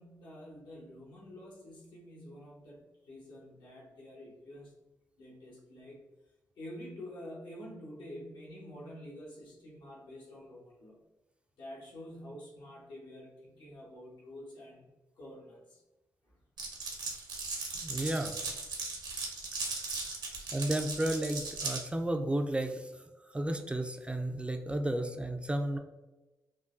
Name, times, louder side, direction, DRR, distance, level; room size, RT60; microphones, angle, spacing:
voice 1, 0.0-4.7 5.2-6.0 6.6-11.0 11.6-14.9 15.2-15.8 16.3-16.4 20.2-20.5, left 1 dB, 85° left, -4 dB, 1.1 m, -48 dB
Glass, 16.6-21.8, right 3 dB, 75° right, 0.9 m, -37 dB
voice 2, 17.8-18.4 20.5-22.9 23.3-25.8, right 1 dB, 15° right, 5 dB, 0.3 m, -32 dB
3.5 x 2.2 x 2.5 m, 1.1 s
cardioid pair, 70°, 7 cm